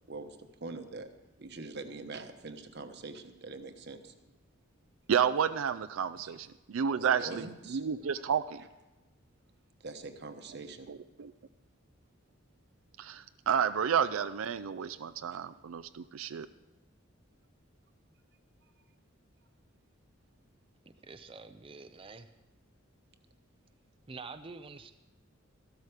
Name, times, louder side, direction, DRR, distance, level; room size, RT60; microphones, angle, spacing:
voice 1, 0.6-1.1 1.4-4.1 6.9-7.8 9.8-10.9, right 3 dB, 55° right, 8 dB, 1.1 m, -43 dB
voice 2, 5.1-8.6 10.9-11.3 13.0-16.5, right 7 dB, 90° right, 10 dB, 0.4 m, -31 dB
voice 3, 21.0-22.3 24.1-24.9, right 4 dB, 25° right, 8 dB, 0.5 m, -46 dB
13.5 x 13.0 x 4.9 m, 1.1 s
head